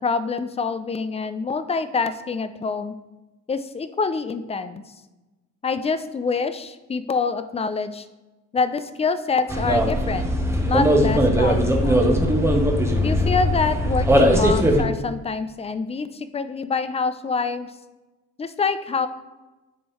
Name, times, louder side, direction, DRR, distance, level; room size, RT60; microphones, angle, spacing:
voice 1, 0.0-2.9 3.5-4.8 5.6-8.1 8.5-10.3 10.7-12.1 13.0-17.7 18.4-19.1, left 4 dB, 20° left, 11 dB, 0.4 m, -26 dB
sound 1, 9.5-14.8, equal, 10° right, 0.9 m, -19 dB
10.0 x 3.7 x 3.2 m, 1.1 s
cardioid pair, 90°, 30 cm